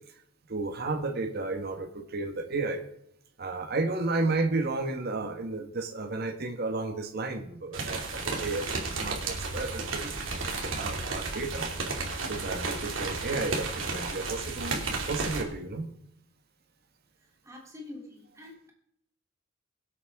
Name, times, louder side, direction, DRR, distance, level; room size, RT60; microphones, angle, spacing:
voice 1, 0.5-2.8 3.4-11.7 12.2-15.9, right 3 dB, 55° right, 5 dB, 1.4 m, -33 dB
sound 1, 7.7-15.4, right 3 dB, 75° right, 2.6 m, -33 dB
voice 2, 17.2-18.7, left 2 dB, 15° right, -1 dB, 3.2 m, -46 dB
22.5 x 8.4 x 3.6 m, 0.70 s
head